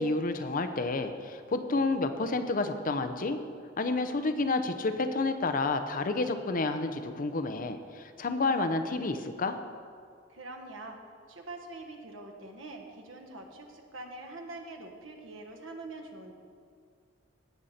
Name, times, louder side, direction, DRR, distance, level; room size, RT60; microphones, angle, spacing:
voice 1, 0.0-3.4 3.8-9.6, left 3 dB, 45° left, 9 dB, 0.6 m, -30 dB
voice 2, 10.3-11.0 11.3-16.3, right 2 dB, 90° right, 4 dB, 1.2 m, -44 dB
16.5 x 6.5 x 4.2 m, 2.2 s
head